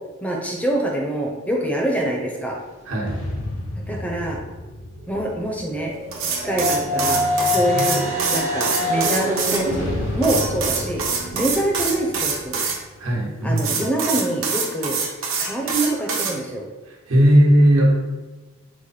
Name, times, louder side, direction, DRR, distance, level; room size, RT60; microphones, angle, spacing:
voice 1, 0.2-2.6 3.8-4.4 5.1-5.9 6.3-8.0 8.3-11.0 11.3-12.6 13.4-15.0 15.4-16.6, right 1 dB, 5° left, -1 dB, 0.5 m, -25 dB
voice 2, 2.8-3.3 7.5-7.9 13.0-13.8 16.9-18.0, equal, 85° right, -4 dB, 1.2 m, -18 dB
sound 1, 3.0-6.7 9.6-13.4, left 1 dB, 60° left, 0.7 m, -33 dB
sound 2, 5.6-11.5, left 1 dB, 35° right, 0.6 m, -25 dB
sound 3, 6.1-9.6 10.2-12.8 13.6-16.3, right 5 dB, 65° right, 0.8 m, -25 dB
4.7 x 2.1 x 4.2 m, 1.2 s
head